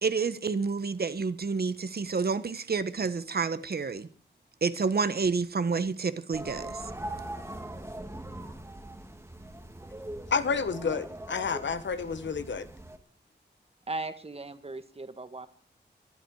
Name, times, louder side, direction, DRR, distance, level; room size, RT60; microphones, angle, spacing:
voice 1, 0.0-4.1 4.6-6.8, right 4 dB, 60° right, 1.2 m, -29 dB
sound 1, 6.3-13.0, right 1 dB, 15° right, 1.9 m, -41 dB
voice 2, 10.3-12.7, left 5 dB, 85° left, 1.3 m, -30 dB
voice 3, 13.9-15.5, right 2 dB, 35° right, 1.6 m, -37 dB
24.0 x 11.5 x 4.8 m
wide cardioid pair, 125°, 18 cm